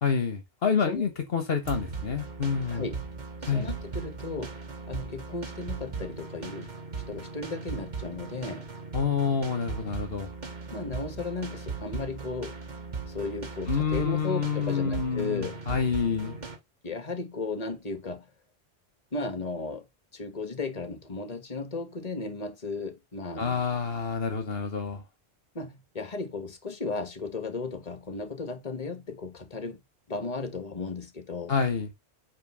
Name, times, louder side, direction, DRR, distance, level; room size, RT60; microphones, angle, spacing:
voice 1, 0.0-2.8 3.5-3.7 8.9-10.3 13.7-16.4 23.4-25.0 31.5-31.9, left 6 dB, 65° left, 1.4 m, -28 dB
sound 1, 1.6-16.6, right 4 dB, 45° right, 1.5 m, -38 dB
voice 2, 2.6-3.1 3.4-4.6 4.9-6.7 7.1-8.7 10.7-12.5 13.1-15.6 16.8-18.3 19.1-19.8 20.1-23.7 25.5-29.8 30.1-31.6, left 3 dB, 35° left, 1.6 m, -35 dB
8.9 x 3.4 x 6.2 m
omnidirectional pair, 1.1 m